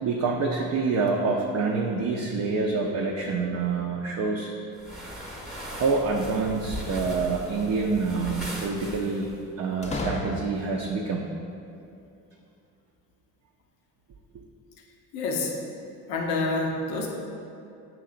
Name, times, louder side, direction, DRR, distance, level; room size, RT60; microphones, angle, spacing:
voice 1, 0.0-4.5 5.7-9.3 9.6-11.3, right 4 dB, 40° right, -1 dB, 0.5 m, -27 dB
sound 1, 4.8-9.4, equal, ahead, 0.9 m, -38 dB
sound 2, 6.4-7.4 9.8-10.9, left 2 dB, 20° left, 0.4 m, -34 dB
voice 2, 15.1-15.5 16.1-17.1, left 3 dB, 75° left, 1 dB, 0.7 m, -27 dB
6.3 x 2.8 x 2.4 m, 2.6 s
hypercardioid pair, 55°, 42 cm